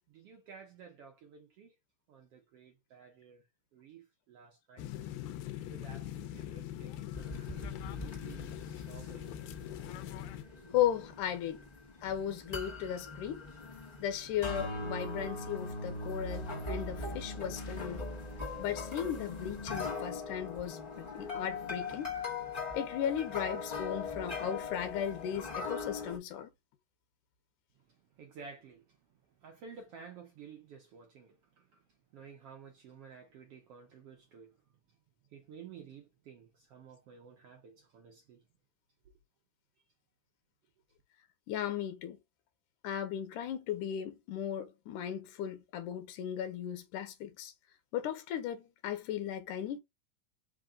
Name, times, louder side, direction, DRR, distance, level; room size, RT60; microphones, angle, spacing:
voice 1, 0.1-1.7 2.1-3.5 3.7-4.9 5.7-9.3 11.5-11.6 27.9-29.0 29.3-31.8 32.1-34.6 35.3-38.4, right 6 dB, 75° right, 1.3 m, -53 dB
sound 1, 4.8-10.4, left 12 dB, 90° left, 2.3 m, -42 dB
sound 2, 7.1-26.2, left 3 dB, 55° left, 0.4 m, -40 dB
voice 2, 10.7-11.7 12.0-13.4 14.0-18.1 18.6-22.1 22.7-26.5 41.5-42.2 42.8-47.5 47.9-49.8, left 10 dB, 70° left, 2.3 m, -36 dB
5.3 x 2.5 x 3.6 m
omnidirectional pair, 4.0 m